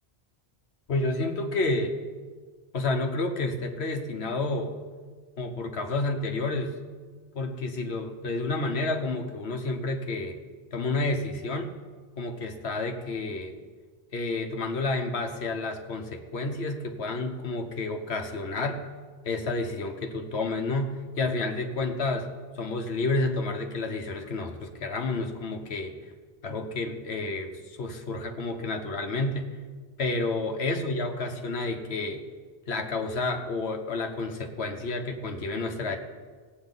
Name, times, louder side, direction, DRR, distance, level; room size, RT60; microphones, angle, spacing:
voice 1, 0.9-2.0 2.7-4.8 5.4-6.7 7.3-10.4 10.7-11.7 12.2-13.5 14.1-18.8 19.2-22.3 22.5-25.9 26.4-29.5 30.0-32.2 32.7-36.0, left 2 dB, 65° left, 4 dB, 1.3 m, -30 dB
18.5 x 8.3 x 4.0 m, 1.5 s
omnidirectional pair, 1.2 m